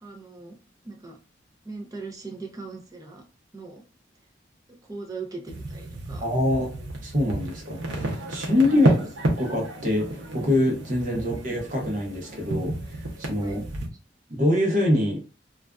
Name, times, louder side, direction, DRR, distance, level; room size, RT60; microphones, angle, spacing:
voice 1, 0.0-0.6 0.8-1.2 1.6-3.2 3.5-3.8 4.8-6.2 8.7-9.0 11.1-11.2 13.4-13.6, right 3 dB, 20° right, 2 dB, 0.5 m, -39 dB
sound 1, 5.5-13.9, right 1 dB, 80° right, 0.7 m, -30 dB
voice 2, 6.2-9.1 9.4-13.0 13.3-13.6 14.3-15.2, left 1 dB, 45° right, 0 dB, 0.8 m, -25 dB
2.4 x 2.3 x 2.2 m, 0.34 s
head